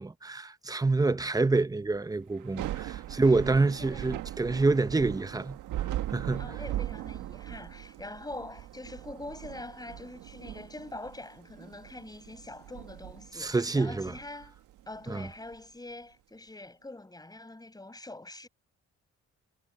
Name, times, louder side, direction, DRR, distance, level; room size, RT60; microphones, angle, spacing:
voice 1, 0.0-5.6 6.1-6.5 13.4-14.1 15.1-15.3, right 3 dB, 10° right, 0.8 m, -27 dB
Thunder / Rain, 2.4-15.5, right 13 dB, 90° right, 1.6 m, -39 dB
voice 2, 3.0-4.1 6.4-14.5 14.9-18.5, left 2 dB, 15° left, 5.3 m, -44 dB
cardioid pair, 90°, 30 cm